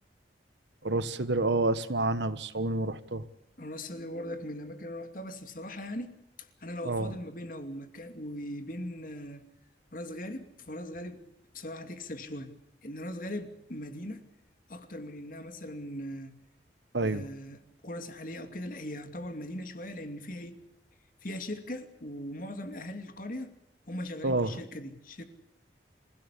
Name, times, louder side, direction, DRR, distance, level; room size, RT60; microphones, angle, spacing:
voice 1, 0.8-3.2 6.8-7.1 16.9-17.2 24.2-24.5, right 2 dB, 80° right, 1.4 m, -28 dB
voice 2, 3.6-6.1 6.4-9.4 9.9-11.2 11.5-12.5 12.8-14.2 14.7-16.3 17.0-20.6 21.2-23.5 23.9-25.2, left 1 dB, 50° left, 2.7 m, -39 dB
27.5 x 16.5 x 8.5 m
head